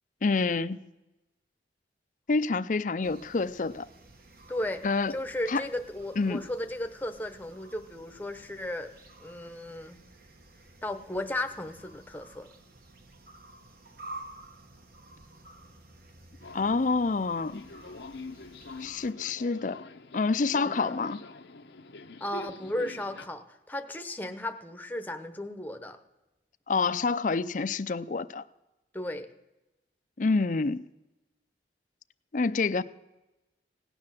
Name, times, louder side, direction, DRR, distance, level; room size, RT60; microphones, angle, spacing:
voice 1, 0.2-0.8 2.3-3.9 4.8-5.1 5.5-5.6 6.2-6.4 16.5-17.6 18.8-19.8 20.1-21.2 26.7-28.4 30.2-30.8 32.3-32.8, left 4 dB, 45° left, 0.5 m, -27 dB
sound 1, 3.0-19.1, right 2 dB, 55° right, 1.4 m, -51 dB
voice 2, 4.5-4.8 5.1-8.9 9.2-10.0 10.8-12.5 20.6-21.0 22.2-26.0 28.9-29.3, left 1 dB, 10° left, 0.9 m, -35 dB
Subway metro underground, 16.4-23.3, left 3 dB, 85° left, 0.8 m, -45 dB
17.0 x 9.7 x 7.5 m
head